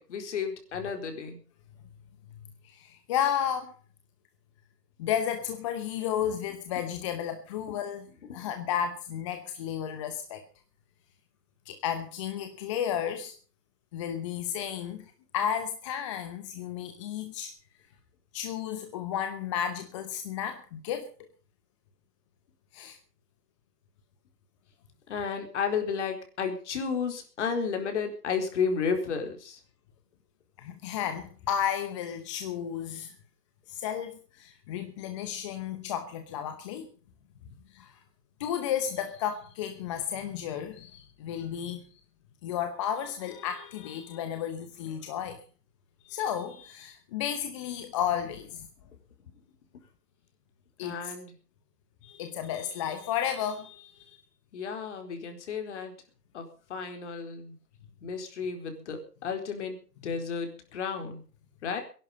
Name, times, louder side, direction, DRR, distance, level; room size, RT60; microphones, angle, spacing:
voice 1, 0.0-1.4 8.2-8.4 25.1-29.6 50.8-51.3 54.5-55.9 56.3-57.6 58.0-59.8 60.0-61.2 61.6-61.8, left 6 dB, 45° left, 4.3 m, -32 dB
voice 2, 2.6-3.8 5.0-8.1 8.3-10.4 11.7-13.3 13.9-15.0 15.3-17.5 18.3-21.1 22.7-23.0 30.6-33.1 33.7-36.9 37.7-38.0 38.4-41.9 42.4-45.4 46.0-48.7 50.8-51.1 52.0-54.2, left 9 dB, 20° left, 0.9 m, -33 dB
20.5 x 11.5 x 5.4 m
hypercardioid pair, 145°, 47 cm